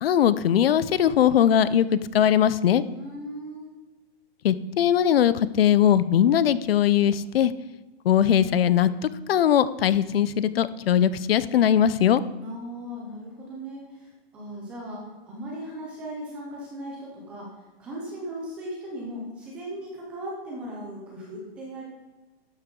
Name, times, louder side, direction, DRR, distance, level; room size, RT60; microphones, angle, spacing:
voice 1, 0.0-2.8 4.4-7.5 8.0-12.2, left 9 dB, 70° left, 16 dB, 0.6 m, -20 dB
voice 2, 2.9-3.7 12.4-17.5 17.8-21.8, right 1 dB, 5° right, -3 dB, 0.4 m, -37 dB
12.0 x 7.9 x 3.8 m, 1.2 s
hypercardioid pair, 170°, 30 cm